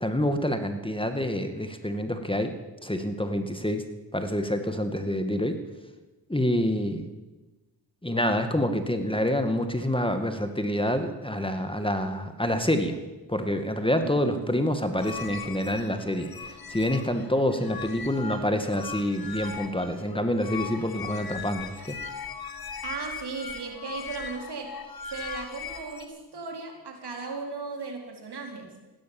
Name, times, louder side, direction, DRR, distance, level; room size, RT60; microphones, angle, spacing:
voice 1, 0.0-2.5 2.8-3.8 4.1-5.6 6.3-7.1 8.0-13.0 13.3-22.0, left 1 dB, 10° left, 7 dB, 2.1 m, -27 dB
voice 2, 14.0-14.5 22.8-24.8 25.1-28.7, right 4 dB, 65° right, 2 dB, 4.1 m, -37 dB
sound 1, 15.0-26.1, left 5 dB, 55° left, 1.7 m, -39 dB
16.0 x 12.5 x 7.3 m, 1.1 s
supercardioid pair, 45°, 43 cm